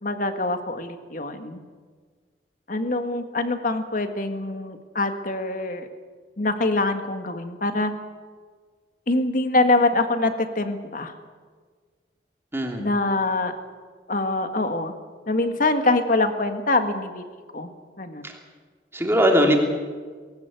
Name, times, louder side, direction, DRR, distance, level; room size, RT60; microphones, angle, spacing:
voice 1, 0.0-1.6 2.7-5.9 6.4-7.9 9.1-11.1 12.8-13.5 14.1-14.9 15.3-17.2 17.5-17.7 18.0-18.3, left 2 dB, 50° left, 7 dB, 1.7 m, -24 dB
voice 2, 12.5-12.8 18.2-18.3 18.9-19.6, equal, 15° right, 1 dB, 3.1 m, -20 dB
19.5 x 18.0 x 8.2 m, 1.5 s
head